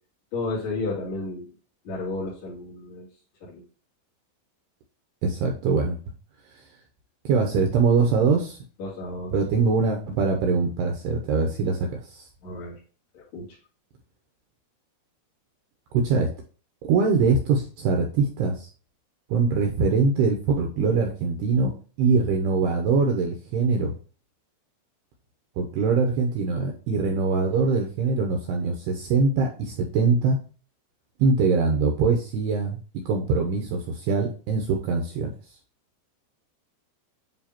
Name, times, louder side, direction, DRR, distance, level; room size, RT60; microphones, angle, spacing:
voice 1, 0.3-1.5 1.8-3.1 3.4-3.6 8.8-9.3 12.4-12.8 13.1-13.6, left 3 dB, 40° left, -8 dB, 3.5 m, -32 dB
voice 2, 5.2-6.0 6.6-6.7 7.2-8.6 9.3-12.3 15.9-16.3 16.8-18.7 19.3-23.9 25.6-30.4 31.2-32.8 33.1-35.3, right 4 dB, 75° right, 3 dB, 2.6 m, -23 dB
9.3 x 4.0 x 2.9 m, 0.37 s
omnidirectional pair, 5.4 m